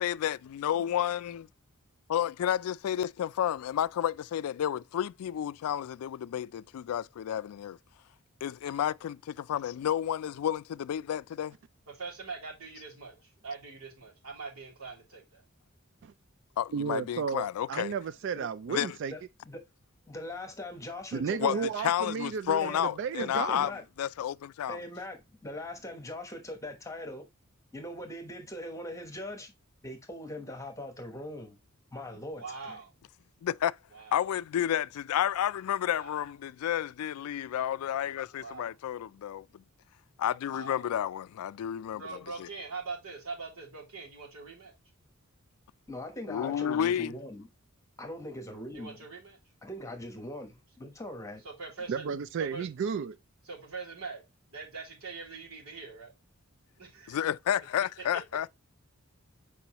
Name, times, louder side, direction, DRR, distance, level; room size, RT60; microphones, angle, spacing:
voice 1, 0.0-1.4 2.1-7.8 8.4-11.6 16.6-17.9 18.7-18.9 21.4-23.7 24.0-24.8 33.4-33.8 34.1-39.6 40.2-42.5 46.3-47.1 57.1-58.5, left 10 dB, 80° left, 0.3 m, -31 dB
voice 2, 11.9-15.4 32.4-32.9 33.9-34.1 35.8-36.2 38.3-38.7 40.5-40.8 41.9-44.7 48.7-49.4 51.4-52.1 52.4-52.6 53.5-54.2 54.5-56.1 56.8-57.2, right 4 dB, 80° right, 3.2 m, -42 dB
voice 3, 16.7-19.1 21.1-23.7 51.9-53.2, right 6 dB, 55° right, 0.3 m, -33 dB
voice 4, 20.1-21.7 22.6-22.8 23.2-23.8 24.7-27.3 27.7-29.5 29.8-31.6 31.9-32.8 45.9-47.5 48.0-49.0 49.6-51.4, left 1 dB, 15° left, 1.0 m, -41 dB
6.9 x 4.8 x 2.9 m
head